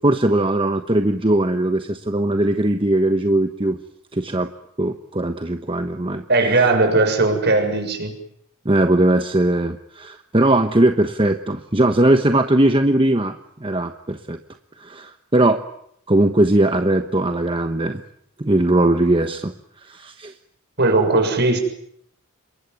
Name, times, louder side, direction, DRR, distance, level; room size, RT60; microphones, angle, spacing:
voice 1, 0.0-3.8 4.1-4.5 4.8-6.2 6.5-6.6 8.6-14.4 14.8-15.6 16.1-18.0 18.4-19.5 19.8-20.3, right 1 dB, 25° right, 7 dB, 1.1 m, -19 dB
voice 2, 6.3-8.1 20.8-21.6, right 2 dB, 50° right, 5 dB, 6.7 m, -18 dB
28.0 x 23.0 x 9.5 m, 0.72 s
head